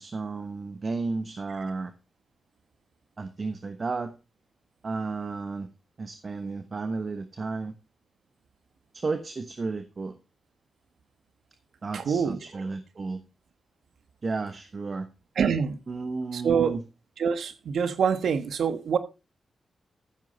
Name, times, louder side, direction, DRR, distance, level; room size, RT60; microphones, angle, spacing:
voice 1, 0.0-1.9 3.2-4.1 4.8-5.7 6.0-7.7 8.9-10.2 11.8-13.2 14.2-15.1 15.9-16.8, right 4 dB, 50° right, 1.1 m, -33 dB
voice 2, 11.9-12.4 15.4-15.8 16.3-16.8 17.2-19.0, right 6 dB, 80° right, 1.3 m, -25 dB
14.5 x 7.8 x 4.2 m
cardioid pair, 55°, 0 cm